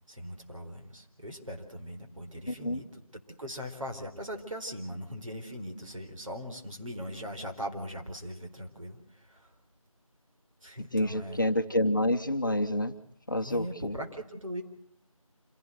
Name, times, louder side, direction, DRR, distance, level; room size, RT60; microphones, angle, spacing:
voice 1, 0.1-2.8 3.4-9.5 10.6-11.5 13.4-14.6, equal, 65° right, 3 dB, 4.4 m, -40 dB
voice 2, 2.5-2.8 10.9-13.0 13.3-13.9, left 1 dB, 35° left, 6 dB, 1.0 m, -28 dB
27.0 x 17.0 x 8.0 m, 0.67 s
figure-of-eight pair, 175°, 18 cm